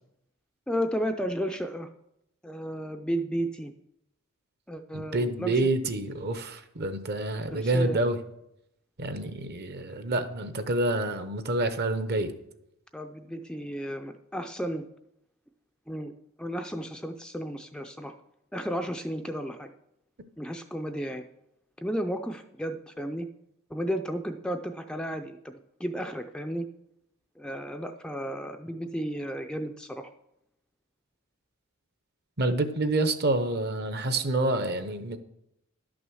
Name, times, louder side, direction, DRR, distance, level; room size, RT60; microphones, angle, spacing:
voice 1, 0.7-1.9 2.4-3.7 4.7-5.6 7.5-8.0 12.9-14.9 15.9-16.1 16.4-18.1 18.5-19.7 20.4-21.2 21.8-23.3 23.7-26.7 27.4-30.1, equal, 5° left, 0.4 m, -33 dB
voice 2, 4.9-8.2 9.0-12.3 32.4-35.2, right 2 dB, 45° right, 0.8 m, -28 dB
11.5 x 6.2 x 6.3 m
head